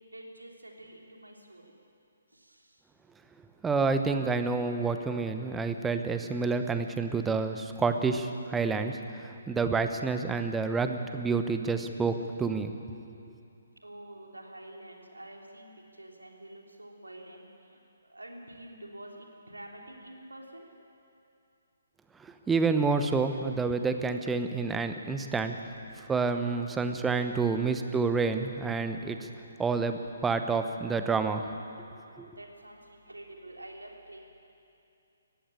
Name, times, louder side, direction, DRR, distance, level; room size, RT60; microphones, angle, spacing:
voice 1, 0.0-1.7 2.3-2.8 13.8-17.8 18.1-20.7 32.0-34.2, right 1 dB, 75° right, 0 dB, 3.5 m, -49 dB
voice 2, 3.6-12.7 22.2-25.6 26.0-29.3 29.6-31.4 32.2-32.3, right 4 dB, 10° right, 8 dB, 0.9 m, -29 dB
19.0 x 15.0 x 8.9 m, 2.7 s
figure-of-eight pair, 135°, 0 cm